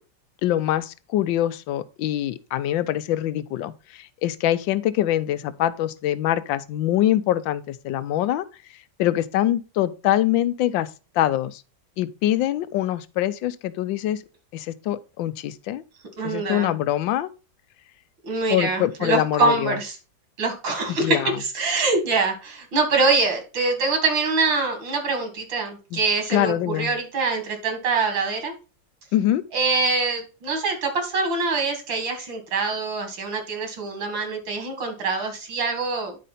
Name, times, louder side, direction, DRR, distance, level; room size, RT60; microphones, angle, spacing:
voice 1, 0.4-8.5 9.0-10.9 11.1-11.6 12.0-14.2 14.5-15.8 16.2-17.3 18.5-19.8 20.9-21.4 25.9-26.0 26.3-27.0 29.1-29.5, left 12 dB, 85° left, 1.4 m, -24 dB
voice 2, 16.2-16.7 18.2-20.0 20.4-28.5 29.5-36.2, right 3 dB, 85° right, 2.9 m, -24 dB
10.0 x 5.1 x 4.1 m
omnidirectional pair, 2.0 m